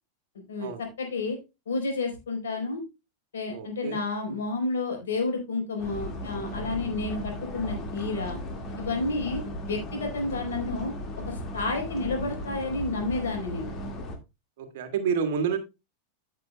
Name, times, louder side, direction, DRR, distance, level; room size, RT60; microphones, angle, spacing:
voice 1, 0.3-1.4 1.7-2.8 3.3-8.4 8.8-10.9 11.2-13.7, left 3 dB, 65° left, 2 dB, 4.0 m, -30 dB
voice 2, 3.5-4.0 14.6-15.6, right 6 dB, 55° right, 6 dB, 1.7 m, -29 dB
sound 1, 5.8-14.2, left 1 dB, 30° left, 2.0 m, -36 dB
15.0 x 6.2 x 2.2 m, 0.25 s
figure-of-eight pair, 90°, 0 cm